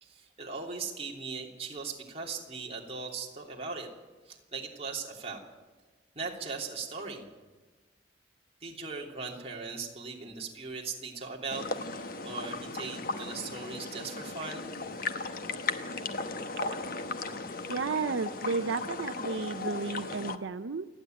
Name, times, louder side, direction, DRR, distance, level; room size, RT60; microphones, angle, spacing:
voice 1, 0.0-3.9 4.3-5.4 6.1-7.2 8.6-14.7, right 4 dB, 30° right, -1 dB, 3.2 m, -39 dB
sound 1, 11.5-20.4, left 3 dB, 50° left, 1.0 m, -36 dB
voice 2, 17.7-20.9, right 4 dB, 85° right, 11 dB, 0.6 m, -32 dB
28.5 x 10.0 x 9.2 m, 1.3 s
head